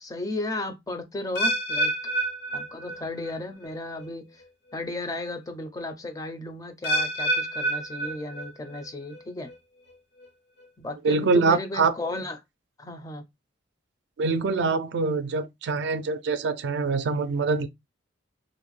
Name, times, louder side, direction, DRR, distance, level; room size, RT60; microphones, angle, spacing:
voice 1, 0.0-1.9 2.5-4.4 4.7-9.5 10.8-12.4 12.8-13.2, left 2 dB, 20° left, 0.4 m, -34 dB
sound 1, 1.4-3.4 3.6-4.1 4.7-4.8 6.8-8.8 9.1-9.6 10.2-10.3, right 1 dB, 70° left, 0.6 m, -28 dB
voice 2, 11.0-11.9 14.2-17.7, right 4 dB, 65° right, 0.4 m, -24 dB
2.5 x 2.1 x 3.0 m
head